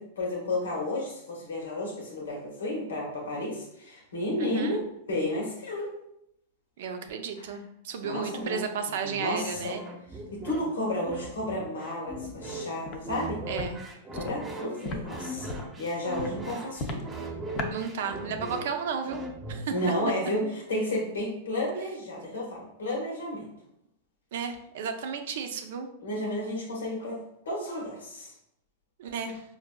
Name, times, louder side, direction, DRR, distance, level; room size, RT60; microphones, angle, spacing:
voice 1, 0.0-5.9 7.4-7.5 8.0-8.6 9.0-13.4 14.1-15.5 15.8-17.0 19.7-23.5 26.0-27.2 27.4-28.3, left 1 dB, 85° left, -2 dB, 1.0 m, -32 dB
voice 2, 4.4-4.8 6.8-9.8 13.5-13.8 17.7-19.2 19.5-19.7 24.3-25.9 29.0-29.4, right 6 dB, 70° right, 6 dB, 0.5 m, -33 dB
sound 1, 9.5-20.1, right 1 dB, 20° right, 0.8 m, -39 dB
Walk footsteps, 12.9-13.0 13.5-13.7 14.1-14.3 14.8-15.0 15.5-15.7 16.2-16.3 16.8-17.0 17.6-17.7, left 2 dB, 40° left, 0.5 m, -34 dB
4.6 x 2.5 x 2.2 m, 0.77 s
hypercardioid pair, 110°, 0 cm